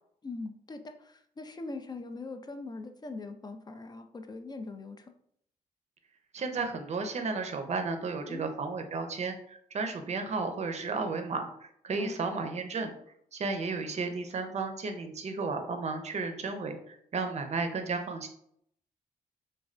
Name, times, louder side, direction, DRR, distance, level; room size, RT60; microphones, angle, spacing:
voice 1, 0.2-5.1 8.3-8.6 12.0-12.2, left 3 dB, 25° left, 7 dB, 0.3 m, -41 dB
voice 2, 6.3-12.9 13.3-18.3, right 4 dB, 45° right, 6 dB, 0.5 m, -33 dB
3.1 x 2.2 x 2.4 m, 0.69 s
cardioid pair, 70°, 16 cm